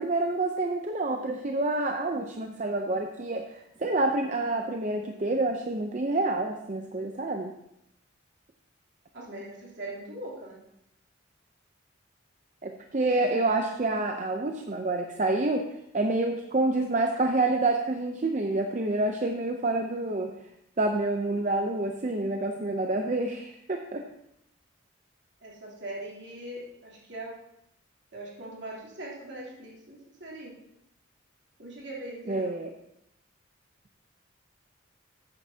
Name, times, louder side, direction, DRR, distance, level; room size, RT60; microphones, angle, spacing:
voice 1, 0.0-7.5 12.6-15.7 15.9-20.3 20.8-24.0 32.3-32.7, right 2 dB, 40° right, 4 dB, 0.6 m, -28 dB
voice 2, 9.1-10.6 13.3-13.5 25.4-27.4 28.1-30.5 31.6-32.6, right 1 dB, 60° right, -5 dB, 3.2 m, -41 dB
13.5 x 8.9 x 2.8 m, 0.81 s
head